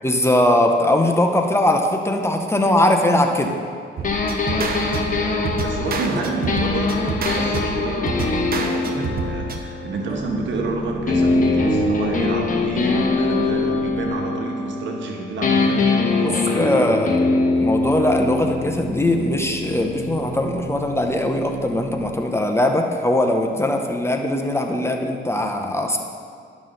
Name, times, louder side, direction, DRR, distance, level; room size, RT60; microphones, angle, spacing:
voice 1, 0.0-3.5 5.9-6.3 16.2-17.1 17.6-26.0, left 1 dB, 15° left, 3 dB, 0.7 m, -20 dB
sound 1, 4.0-10.6 11.1-15.1 15.4-21.2, left 3 dB, 40° left, 1.1 m, -23 dB
sound 2, 4.0-9.6, right 4 dB, 50° right, 0.9 m, -28 dB
voice 2, 4.5-17.2, right 3 dB, 70° right, 1 dB, 1.4 m, -29 dB
sound 3, 10.1-14.5 18.1-22.3, right 1 dB, 15° right, 1.6 m, -36 dB
10.5 x 6.1 x 3.9 m, 2.2 s
cardioid pair, 90°, 20 cm